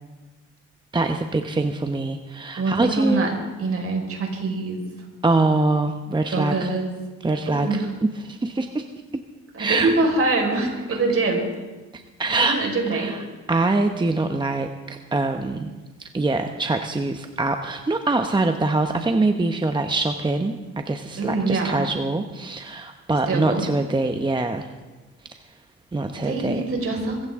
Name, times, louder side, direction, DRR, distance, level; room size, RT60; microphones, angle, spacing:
voice 1, 0.9-3.3 5.2-6.7 7.2-8.9 9.6-9.9 11.9-12.6 12.9-13.2 13.5-15.7 16.0-24.7 25.3-25.4 25.9-26.6, right 2 dB, 15° right, 6 dB, 0.9 m, -24 dB
voice 2, 2.6-3.3 3.6-4.8 6.3-6.9 7.5-7.9 9.5-11.5 12.3-13.1 21.2-21.8 23.3-23.6 26.2-27.3, right 3 dB, 50° right, 1 dB, 4.9 m, -24 dB
22.5 x 15.5 x 3.7 m, 1.2 s
cardioid pair, 90°, 30 cm